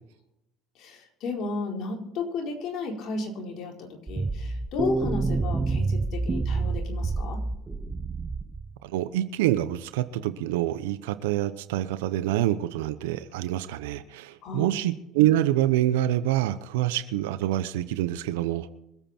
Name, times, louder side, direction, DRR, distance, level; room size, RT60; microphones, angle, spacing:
voice 1, 0.8-7.4 14.4-14.8, left 4 dB, 60° left, 1 dB, 4.5 m, -33 dB
sound 1, 4.1-8.7, right 3 dB, 20° right, 1.0 m, -28 dB
voice 2, 8.8-18.7, right 13 dB, 85° right, 13 dB, 0.8 m, -26 dB
25.5 x 9.0 x 4.5 m, 0.86 s
supercardioid pair, 85°, 0 cm